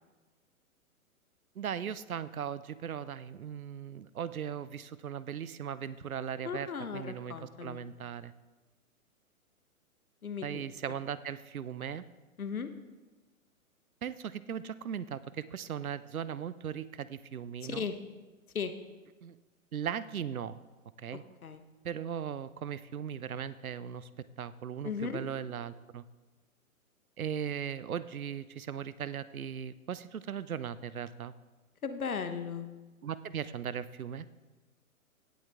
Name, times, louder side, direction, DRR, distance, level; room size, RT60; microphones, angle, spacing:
voice 1, 1.6-8.3 10.4-12.0 14.0-17.9 19.2-19.4 19.7-20.5 21.0-21.2 21.8-24.1 24.4-26.0 27.2-31.3 33.0-34.3, right 8 dB, 75° right, 16 dB, 0.7 m, -38 dB
voice 2, 6.4-7.8 10.2-10.6 12.4-12.7 17.6-17.9 18.5-18.7 21.1-21.6 24.8-25.2 31.8-32.7, left 6 dB, 75° left, 9 dB, 1.2 m, -36 dB
16.5 x 7.4 x 3.6 m, 1.2 s
figure-of-eight pair, 125°, 43 cm